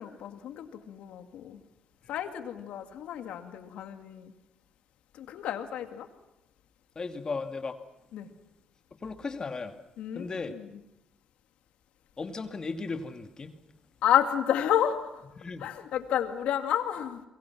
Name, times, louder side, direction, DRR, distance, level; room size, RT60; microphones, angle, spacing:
voice 1, 0.0-1.6 2.1-4.3 5.1-6.1 8.1-8.3 10.0-10.8 14.0-15.2 15.6-17.2, left 10 dB, 75° left, 2.2 m, -30 dB
voice 2, 7.0-7.8 9.0-9.8 10.2-10.5 12.2-13.5 15.4-15.7, left 4 dB, 40° left, 2.2 m, -35 dB
29.5 x 22.5 x 6.1 m
supercardioid pair, 65°, 2 cm